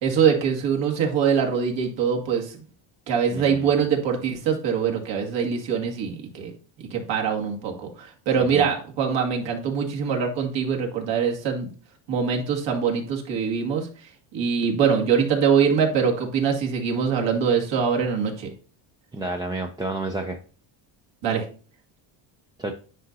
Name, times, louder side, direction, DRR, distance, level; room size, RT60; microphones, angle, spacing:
voice 1, 0.0-2.5 3.1-6.5 6.9-11.7 12.1-13.9 14.3-18.5 21.2-21.4, right 6 dB, 65° right, 1 dB, 2.2 m, -23 dB
voice 2, 3.3-3.7 8.4-8.7 19.1-20.4 22.6-22.7, right 2 dB, 10° right, 3 dB, 0.4 m, -30 dB
9.9 x 5.2 x 2.8 m, 0.39 s
cardioid pair, 140°, 48 cm